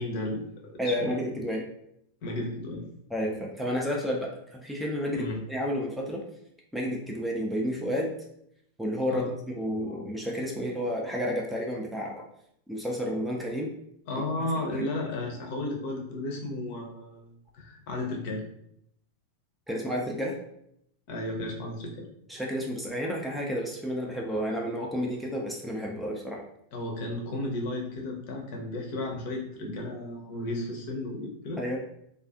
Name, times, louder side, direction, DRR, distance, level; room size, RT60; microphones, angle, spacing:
voice 1, 0.0-1.1 2.2-2.9 5.1-5.4 9.1-9.3 14.1-18.4 21.1-22.1 26.7-31.6, left 2 dB, 50° left, 0 dB, 0.6 m, -34 dB
voice 2, 0.8-1.6 3.1-6.2 6.7-8.1 8.8-12.2 12.7-13.7 14.6-14.8 19.7-20.4 22.3-26.4 31.6-31.8, equal, ahead, -2 dB, 0.4 m, -31 dB
2.4 x 2.4 x 2.4 m, 0.74 s
figure-of-eight pair, 90°, 0 cm